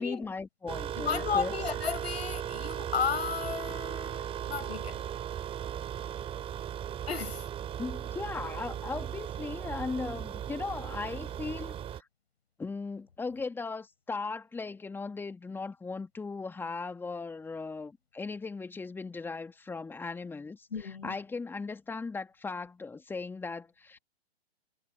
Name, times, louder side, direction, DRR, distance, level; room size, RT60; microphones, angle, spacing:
voice 1, 0.0-1.6 7.8-12.1 12.6-24.0, left 4 dB, 5° left, 2.2 m, -38 dB
sound 1, 0.7-12.0, right 10 dB, 15° right, 5.2 m, -37 dB
voice 2, 1.0-5.0 7.1-7.4 20.7-21.1, left 6 dB, 70° left, 6.5 m, -33 dB
figure-of-eight pair, 125°, 32 cm